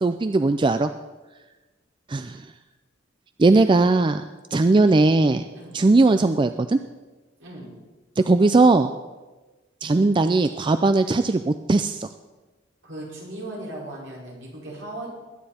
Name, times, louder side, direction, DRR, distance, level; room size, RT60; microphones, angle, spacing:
voice 1, 0.0-0.9 2.1-2.4 3.4-4.2 4.5-5.4 5.7-6.8 8.2-8.9 9.8-12.1, right 3 dB, 25° right, 10 dB, 0.4 m, -19 dB
voice 2, 7.4-7.7 12.8-15.1, right 1 dB, 70° right, -4 dB, 5.3 m, -37 dB
20.5 x 9.6 x 4.3 m, 1.2 s
head